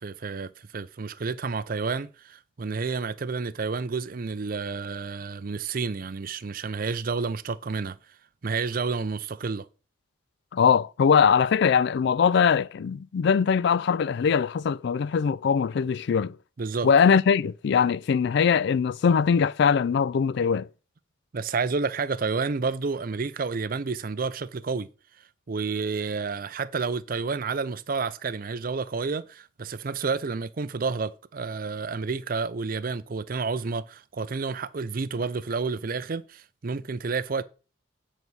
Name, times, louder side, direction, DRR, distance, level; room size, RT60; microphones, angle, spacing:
voice 1, 0.0-8.0 8.4-9.7 16.6-16.9 21.3-24.9 25.5-37.4, right 4 dB, 45° right, 0.5 m, -30 dB
voice 2, 10.5-16.4 16.8-20.7, left 6 dB, 55° left, 0.3 m, -21 dB
8.9 x 4.0 x 6.2 m
head